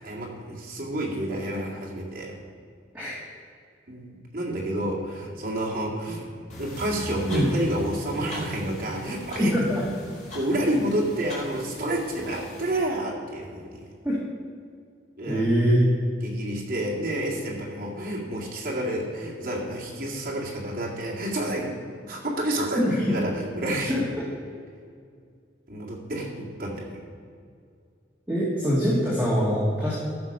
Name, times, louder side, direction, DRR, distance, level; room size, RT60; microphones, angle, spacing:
voice 1, 0.0-2.3 3.9-6.3 6.6-9.5 10.3-13.8 15.2-15.4 16.2-21.7 22.0-24.0 25.7-26.9, right 1 dB, 50° right, -3 dB, 2.2 m, -29 dB
sound 1, 6.5-12.8, left 1 dB, 40° left, 2.8 m, -40 dB
voice 2, 9.4-9.8 14.0-14.2 15.3-15.8 22.8-23.0 23.9-24.2 28.3-29.9, equal, 10° right, -8 dB, 1.8 m, -23 dB
13.5 x 5.9 x 5.4 m, 2.2 s
head